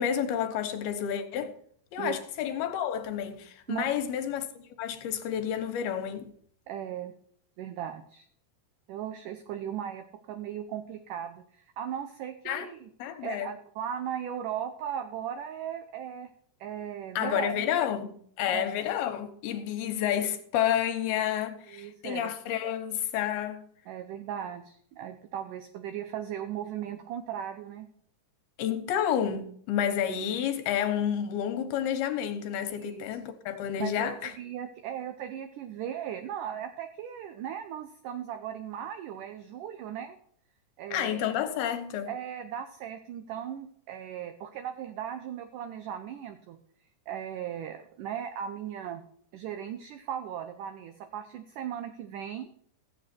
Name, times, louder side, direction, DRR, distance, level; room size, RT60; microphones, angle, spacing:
voice 1, 0.0-1.5 1.9-6.3 12.5-12.7 13.0-13.5 17.2-23.7 28.6-34.3 40.9-42.1, left 9 dB, 80° left, 3.1 m, -30 dB
voice 2, 6.7-7.1 7.6-8.2 8.9-12.9 13.2-16.3 16.6-17.8 18.5-18.6 21.7-22.3 23.9-27.9 32.7-33.1 33.8-40.2 40.8-41.3 42.1-46.6 47.1-49.0 49.3-52.5, right 9 dB, 75° right, 2.0 m, -37 dB
15.5 x 8.0 x 4.4 m
omnidirectional pair, 4.5 m